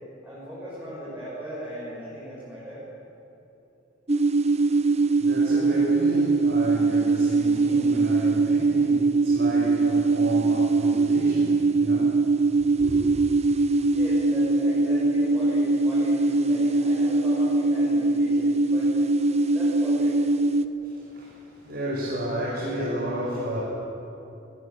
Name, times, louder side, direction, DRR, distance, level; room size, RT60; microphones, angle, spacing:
voice 1, 0.2-2.8 13.9-19.1 19.5-20.1, equal, 10° right, -9 dB, 7.0 m, -38 dB
sound 1, 4.1-20.6, right 3 dB, 35° right, 0.9 m, -22 dB
voice 2, 4.8-13.1 20.8-23.6, equal, 55° right, -6 dB, 6.5 m, -32 dB
23.0 x 20.0 x 8.8 m, 2.9 s
head